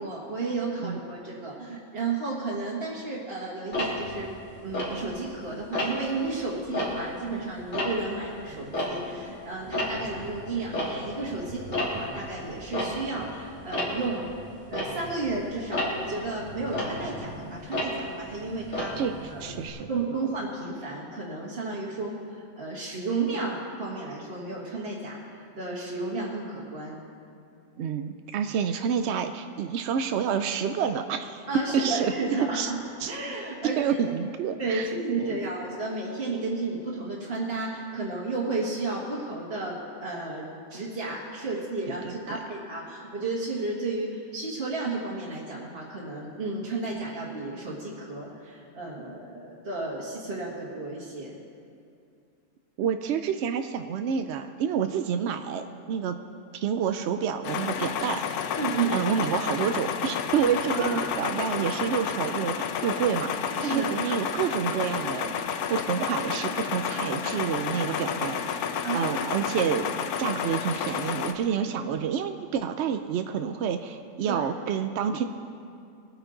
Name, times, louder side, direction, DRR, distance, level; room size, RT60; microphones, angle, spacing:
voice 1, 0.0-4.3 4.6-14.3 14.7-18.9 19.3-19.5 19.9-27.0 31.5-32.8 33.1-34.0 34.6-51.3 58.5-59.0 60.7-61.0 63.6-64.1 68.8-69.1 74.3-74.5, right 3 dB, 40° right, -6 dB, 1.7 m, -32 dB
Tick-tock, 3.7-5.4 5.7-6.2 6.6-9.3 9.6-19.7, left 1 dB, 55° left, 2.8 m, -33 dB
voice 2, 19.0-20.2 27.8-31.4 31.7-32.1 32.5-32.7 33.0-33.1 33.6-35.4 41.9-42.1 52.8-56.2 56.5-58.2 58.9-63.3 63.6-65.3 65.7-68.7 68.9-69.9 70.2-75.2, right 7 dB, 70° right, 8 dB, 0.6 m, -28 dB
sound 1, 57.4-71.3, left 7 dB, 80° left, 1.1 m, -30 dB
21.0 x 9.0 x 3.9 m, 2.5 s
omnidirectional pair, 1.6 m